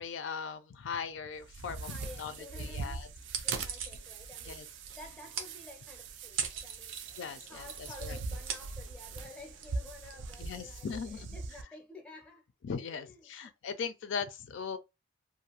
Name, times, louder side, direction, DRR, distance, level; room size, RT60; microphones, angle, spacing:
voice 1, 0.0-3.1 4.5-4.7 7.2-8.2 10.4-11.4 12.6-14.8, left 6 dB, 70° left, 0.4 m, -39 dB
sound 1, 1.3-11.6, right 4 dB, 65° right, 0.4 m, -42 dB
voice 2, 1.8-3.1 3.4-7.0 7.5-12.5 12.8-13.5 13.8-13.9, left 2 dB, 5° left, 0.6 m, -52 dB
sound 2, 3.2-11.0, right 6 dB, 90° right, 0.7 m, -42 dB
2.5 x 2.3 x 2.9 m
head